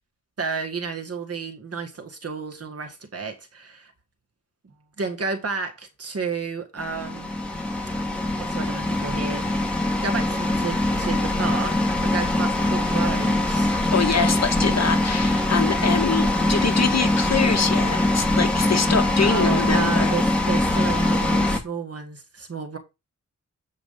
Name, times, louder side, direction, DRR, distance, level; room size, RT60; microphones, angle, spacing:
voice 1, 0.4-3.9 4.6-7.3 8.4-9.6 10.0-13.7 19.2-22.8, right 5 dB, 55° right, 1.9 m, -31 dB
sound 1, 6.8-21.6, left 1 dB, 5° left, 2.3 m, -22 dB
voice 2, 13.9-20.1, left 5 dB, 60° left, 1.8 m, -24 dB
8.1 x 5.1 x 5.3 m
wide cardioid pair, 130°, 30 cm